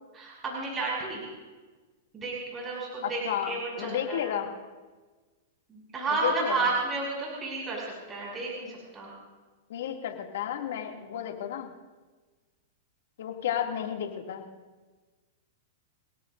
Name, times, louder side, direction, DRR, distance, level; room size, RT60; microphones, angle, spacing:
voice 1, 0.1-1.3 2.1-4.4 5.7-9.2, right 3 dB, 20° right, -4 dB, 6.1 m, -32 dB
voice 2, 3.0-4.5 6.2-6.6 9.7-11.7 13.2-14.5, left 9 dB, 75° left, 2 dB, 2.5 m, -32 dB
29.5 x 18.5 x 2.6 m, 1.3 s
hypercardioid pair, 140°, 0 cm